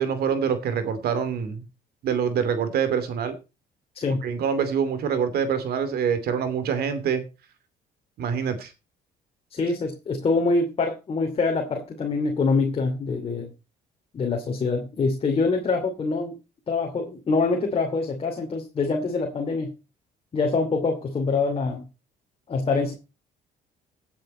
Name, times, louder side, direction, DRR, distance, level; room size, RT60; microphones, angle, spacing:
voice 1, 0.0-1.6 2.0-3.3 4.2-7.2 8.2-8.7, right 7 dB, 65° right, 10 dB, 2.7 m, -25 dB
voice 2, 9.5-13.5 14.1-16.4 16.7-19.7 20.3-21.8 22.5-22.9, left 4 dB, 35° left, 2 dB, 2.7 m, -25 dB
16.5 x 7.6 x 4.3 m, 0.29 s
cardioid pair, 110°, 17 cm